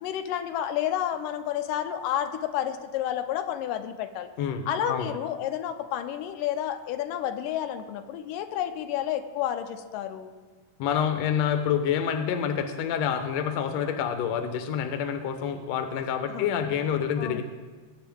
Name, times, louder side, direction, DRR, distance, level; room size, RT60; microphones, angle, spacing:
voice 1, 0.0-4.3 4.7-10.3 15.9-16.0 16.3-16.5 17.2-17.4, left 10 dB, 85° left, 8 dB, 2.3 m, -30 dB
voice 2, 10.8-17.4, left 8 dB, 70° left, 7 dB, 1.8 m, -27 dB
19.5 x 8.5 x 3.6 m, 1.4 s
omnidirectional pair, 3.8 m